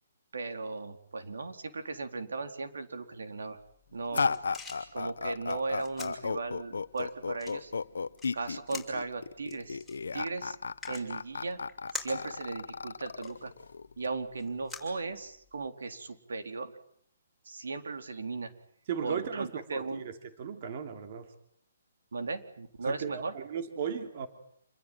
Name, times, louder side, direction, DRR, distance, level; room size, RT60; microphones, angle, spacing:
voice 1, 0.3-3.6 3.9-4.3 4.9-7.7 8.3-9.8 10.1-10.6 10.9-11.6 11.9-13.5 14.0-16.8 17.4-18.5 19.0-20.1 22.1-23.3, right 3 dB, 85° right, 7 dB, 4.1 m, -37 dB
sound 1, 3.6-15.7, left 4 dB, ahead, 6.9 m, -48 dB
sound 2, 4.1-14.1, left 5 dB, 90° left, 1.1 m, -34 dB
voice 2, 18.9-20.1 20.4-21.3 22.9-24.3, right 7 dB, 35° right, 7 dB, 3.0 m, -36 dB
28.0 x 21.5 x 9.3 m, 0.67 s
hypercardioid pair, 170°, 0 cm